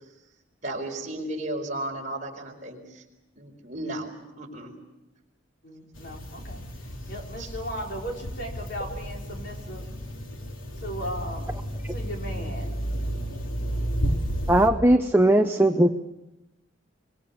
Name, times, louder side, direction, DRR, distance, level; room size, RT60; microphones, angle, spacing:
voice 1, 0.6-3.0 3.4-4.1 4.4-4.7 7.4-7.5, right 1 dB, 40° right, 0 dB, 5.1 m, -34 dB
voice 2, 5.6-6.6 7.1-9.9 10.7-11.5 11.9-12.7, equal, 55° left, 0 dB, 5.1 m, -36 dB
sound 1, 5.9-14.7, equal, 85° left, 3.2 m, -32 dB
voice 3, 14.5-15.9, right 1 dB, 10° right, 5 dB, 0.7 m, -19 dB
24.5 x 23.0 x 7.2 m, 0.97 s
head